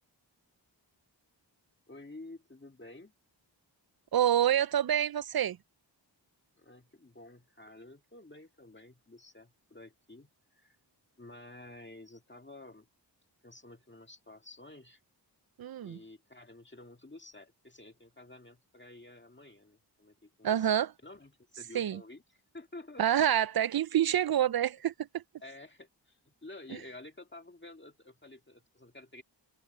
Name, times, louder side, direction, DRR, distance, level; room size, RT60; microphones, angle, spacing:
voice 1, 1.9-3.1 6.6-10.8 11.2-12.9 13.4-15.0 15.8-20.7 21.0-22.2 22.5-23.0 25.4-29.2, left 2 dB, 25° left, 2.2 m, -51 dB
voice 2, 4.1-5.6 15.6-16.0 20.4-20.9 21.7-22.0 23.0-25.2, right 10 dB, 55° right, 0.5 m, -27 dB
wide cardioid pair, 70°, 44 cm